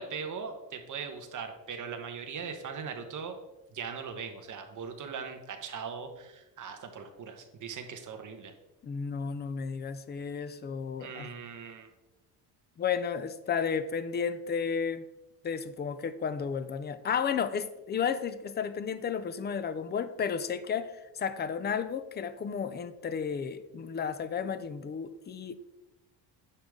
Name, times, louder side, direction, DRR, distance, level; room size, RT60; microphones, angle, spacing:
voice 1, 0.0-3.4 3.7-8.5 11.0-11.9, right 6 dB, 40° right, 5 dB, 1.1 m, -40 dB
voice 2, 8.8-11.3 12.8-15.1 15.4-25.5, left 6 dB, 25° left, 12 dB, 0.3 m, -33 dB
9.8 x 6.6 x 3.6 m, 0.99 s
cardioid pair, 175°, 46 cm